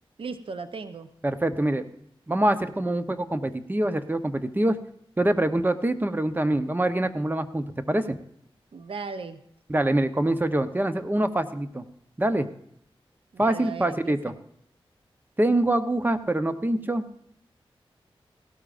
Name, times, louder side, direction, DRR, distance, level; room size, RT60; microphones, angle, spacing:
voice 1, 0.2-1.1 8.7-9.4 13.3-14.3, right 4 dB, 65° right, 10 dB, 0.7 m, -37 dB
voice 2, 1.2-1.8 2.3-4.8 5.2-8.2 9.7-11.8 12.2-12.5 13.4-14.3 15.4-17.2, right 1 dB, 20° right, 10 dB, 0.8 m, -25 dB
17.0 x 12.0 x 2.5 m, 0.70 s
cardioid pair, 60°, 10 cm